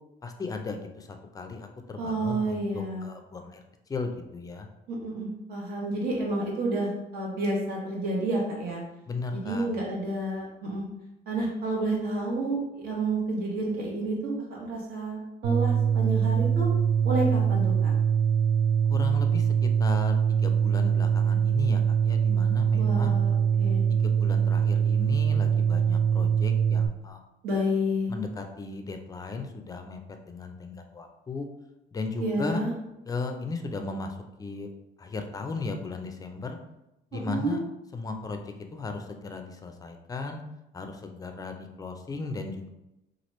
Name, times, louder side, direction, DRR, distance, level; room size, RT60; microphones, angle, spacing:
voice 1, 0.2-3.6 3.9-4.7 9.1-9.7 18.9-23.2 23.9-27.2 28.1-31.5 31.9-32.6 33.0-34.7 35.0-36.6 37.1-37.6 37.9-40.4 40.7-42.7, left 3 dB, 20° left, 5 dB, 0.4 m, -36 dB
voice 2, 2.0-3.1 4.9-8.8 9.3-10.9 11.3-16.7 17.0-17.9 22.7-23.8 27.4-28.1 32.2-32.7 37.1-37.6, right 1 dB, 65° right, -2 dB, 1.1 m, -30 dB
sound 1, 15.4-26.9, right 7 dB, 85° right, 0.5 m, -23 dB
2.9 x 2.4 x 3.1 m, 0.90 s
cardioid pair, 110°, 17 cm